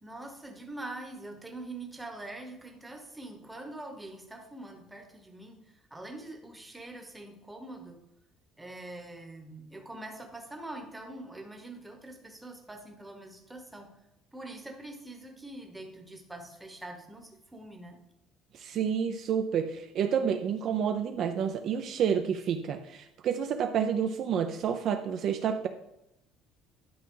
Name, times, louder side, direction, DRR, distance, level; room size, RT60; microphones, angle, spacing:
voice 1, 0.0-8.1 8.6-13.9 14.3-18.0, right 2 dB, 5° right, 3 dB, 1.0 m, -44 dB
voice 2, 18.5-25.7, right 7 dB, 40° right, 7 dB, 0.5 m, -29 dB
11.0 x 5.6 x 3.8 m, 0.85 s
cardioid pair, 175°, 0 cm